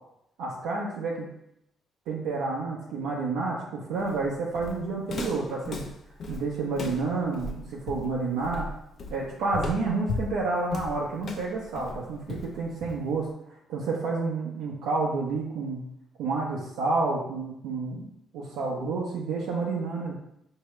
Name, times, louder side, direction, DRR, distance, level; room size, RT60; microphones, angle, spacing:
voice 1, 0.4-1.3 2.1-5.9 6.3-8.7 9.1-13.3 13.7-15.9 16.2-18.1 18.3-20.1, right 3 dB, 85° right, -5 dB, 0.7 m, -29 dB
Walk footsteps, 4.0-13.2, left 3 dB, 55° left, 0.6 m, -37 dB
4.6 x 2.7 x 3.1 m, 0.79 s
cardioid pair, 80°, 0 cm